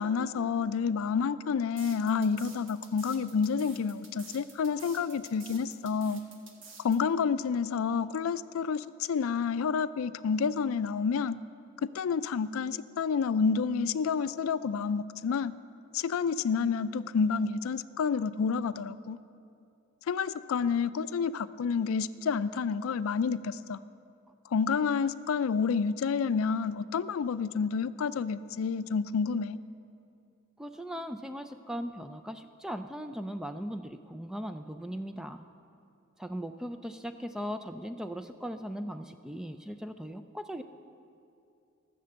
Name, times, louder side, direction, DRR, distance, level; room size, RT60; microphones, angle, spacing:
voice 1, 0.0-6.2 6.8-11.4 11.8-15.6 15.9-19.2 20.1-23.8 24.5-29.6, left 5 dB, 85° left, 15 dB, 0.4 m, -29 dB
sound 1, 1.8-7.0, right 5 dB, 65° right, 1.4 m, -50 dB
voice 2, 30.6-35.4 36.2-40.6, equal, 5° right, 9 dB, 0.3 m, -38 dB
15.0 x 6.7 x 7.8 m, 2.6 s
head